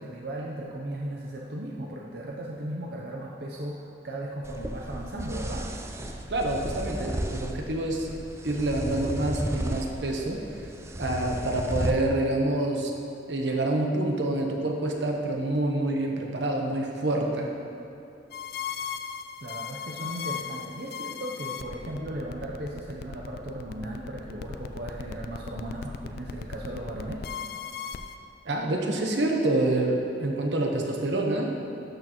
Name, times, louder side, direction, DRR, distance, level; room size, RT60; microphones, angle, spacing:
voice 1, 0.0-5.7 19.4-27.3, right 1 dB, 65° right, -2 dB, 0.7 m, -36 dB
sound 1, 4.4-11.9, right 1 dB, 15° right, 0.4 m, -34 dB
voice 2, 6.3-8.1 8.4-10.6 11.0-12.9 13.3-17.5 28.4-31.5, right 2 dB, 85° right, 1 dB, 1.0 m, -27 dB
sound 2, 18.3-28.2, left 7 dB, 60° left, 0.3 m, -37 dB
12.0 x 6.4 x 3.0 m, 2.8 s
head